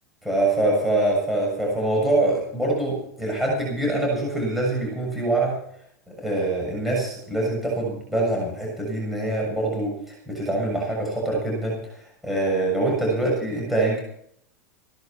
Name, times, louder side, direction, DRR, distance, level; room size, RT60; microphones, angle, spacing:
voice 1, 0.2-5.6 6.1-11.8 12.2-14.0, right 2 dB, ahead, -3 dB, 6.8 m, -24 dB
16.5 x 12.0 x 5.9 m, 0.69 s
hypercardioid pair, 115°, 9 cm